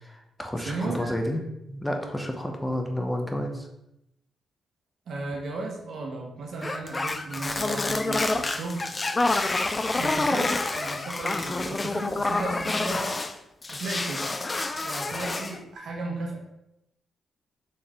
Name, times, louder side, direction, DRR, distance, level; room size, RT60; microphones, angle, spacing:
voice 1, 0.0-1.4 1.7-3.7, left 1 dB, 10° left, 2 dB, 0.9 m, -30 dB
voice 2, 0.6-1.1 5.1-8.8 10.0-13.2 13.7-14.3 14.8-16.4, right 2 dB, 70° right, -1 dB, 1.3 m, -34 dB
sound 1, 6.6-13.3 13.6-15.6, left 2 dB, 30° left, 0.4 m, -28 dB
4.5 x 3.2 x 3.7 m, 0.85 s
cardioid pair, 70°, 0 cm